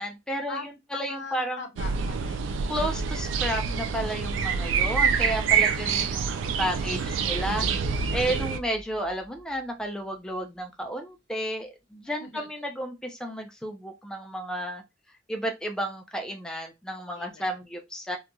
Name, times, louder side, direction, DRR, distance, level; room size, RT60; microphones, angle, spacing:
voice 1, 0.0-1.7 2.7-7.7 8.1-14.8 15.3-18.2, right 1 dB, 5° left, 0.4 m, -32 dB
voice 2, 0.9-2.7 5.8-6.2 6.6-6.9 7.5-7.7 12.2-12.7 17.1-17.5, left 4 dB, 70° left, 0.6 m, -42 dB
sound 1, 1.8-8.6, right 6 dB, 85° right, 0.3 m, -26 dB
sound 2, 4.6-7.5, right 2 dB, 55° right, 1.0 m, -48 dB
sound 3, 7.0-9.6, equal, 20° right, 1.2 m, -36 dB
2.9 x 2.5 x 2.2 m
head